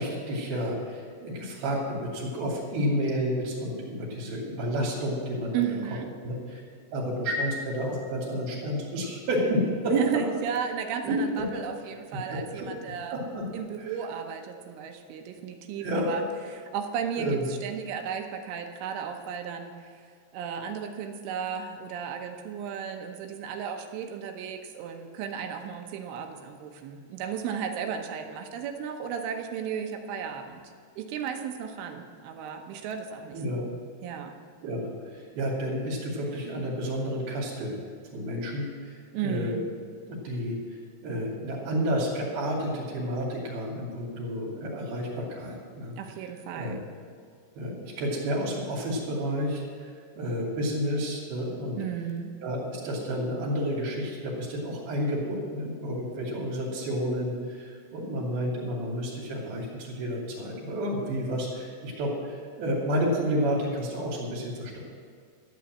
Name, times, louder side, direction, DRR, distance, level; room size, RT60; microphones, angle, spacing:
voice 1, 0.0-5.5 6.2-6.6 6.9-9.9 11.0-11.4 12.5-12.7 13.1-13.4 13.8-14.0 15.8-16.1 17.2-17.4 33.3-33.6 34.6-37.8 38.1-39.5 40.1-40.6 41.0-46.3 46.5-46.8 47.6-51.8 52.4-64.8, equal, 55° right, -3 dB, 3.8 m, -30 dB
voice 2, 5.5-6.1 9.9-13.2 13.5-16.2 16.5-17.3 17.6-19.8 20.3-30.6 31.0-33.7 34.0-34.3 39.1-39.6 46.0-46.8 51.8-52.3, right 8 dB, 80° right, 4 dB, 3.4 m, -34 dB
12.5 x 8.9 x 7.3 m, 2.1 s
omnidirectional pair, 5.6 m